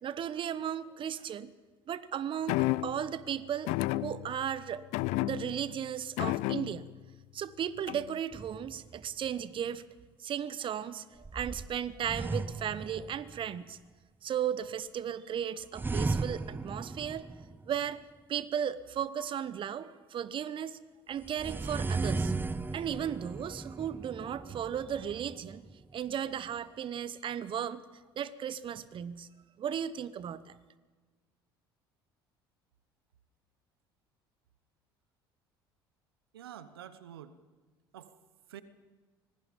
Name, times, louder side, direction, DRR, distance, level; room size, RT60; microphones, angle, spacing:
voice 1, 0.0-1.5 1.9-3.7 4.0-4.8 5.2-6.9 7.3-9.8 10.2-11.0 11.3-13.8 14.2-17.3 17.7-18.0 18.3-20.8 21.1-22.3 22.7-25.6 25.9-27.8 28.2-29.3 29.6-30.6, right 9 dB, 45° right, 17 dB, 1.0 m, -35 dB
sound 1, 2.5-3.1 3.7-4.5 4.9-5.7 6.2-7.0 7.9-8.2, left 18 dB, 65° left, 0.6 m, -31 dB
sound 2, 8.3-9.3 11.2-13.5 15.7-17.9 21.2-25.9, right 3 dB, 15° right, 0.8 m, -36 dB
voice 2, 36.3-37.4 37.9-38.2 38.5-38.6, right 10 dB, 80° right, 14 dB, 1.0 m, -47 dB
25.5 x 20.0 x 5.3 m, 1.3 s
hypercardioid pair, 60°, 12 cm